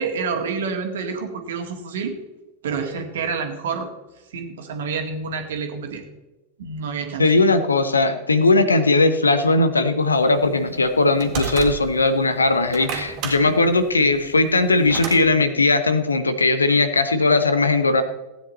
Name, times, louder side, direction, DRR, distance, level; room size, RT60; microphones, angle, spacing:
voice 1, 0.0-2.1 2.6-3.9 4.3-6.0 6.6-7.3 13.4-13.6, right 5 dB, 60° right, 5 dB, 1.9 m, -28 dB
voice 2, 7.2-18.0, left 3 dB, 75° left, 10 dB, 1.0 m, -18 dB
sound 1, 10.4-12.1 12.6-15.2, right 6 dB, 40° right, 2.0 m, -31 dB
16.5 x 9.4 x 4.2 m, 1.1 s
figure-of-eight pair, 90°, 0 cm